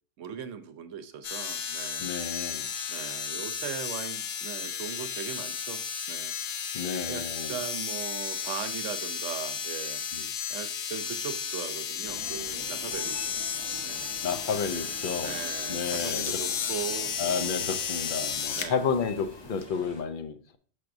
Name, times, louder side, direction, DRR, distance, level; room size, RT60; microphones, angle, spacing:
voice 1, 0.2-2.1 2.9-6.3 7.1-10.0 10.5-13.4 13.8-14.1 15.2-17.6 18.5-18.9, right 8 dB, 80° right, 1.0 m, -39 dB
sound 1, 1.2-18.7 19.6-19.7, left 7 dB, 80° left, 1.0 m, -33 dB
voice 2, 2.0-2.7 6.7-7.6 10.1-10.3 14.2-15.4 15.7-16.4 17.2-20.6, left 6 dB, 55° left, 0.7 m, -31 dB
sound 2, 12.1-20.0, left 1 dB, 25° left, 0.8 m, -46 dB
6.5 x 5.8 x 2.5 m
omnidirectional pair, 1.3 m